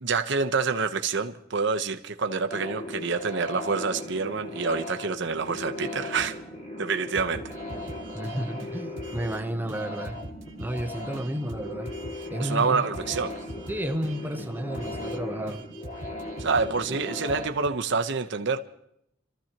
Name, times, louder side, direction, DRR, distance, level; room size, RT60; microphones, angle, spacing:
voice 1, 0.0-6.4 6.8-7.5 12.4-13.4 16.4-18.6, right 4 dB, 65° right, 1.0 m, -27 dB
sound 1, 2.5-17.5, left 1 dB, 40° left, 2.2 m, -38 dB
sound 2, 7.1-9.4 9.7-12.3 12.6-12.7 12.9-15.2 15.5-17.7, right 1 dB, 80° right, 1.5 m, -43 dB
voice 2, 8.1-10.2 10.6-11.9 12.3-12.7 13.7-15.6, equal, 10° right, 0.9 m, -32 dB
28.0 x 14.5 x 3.0 m
head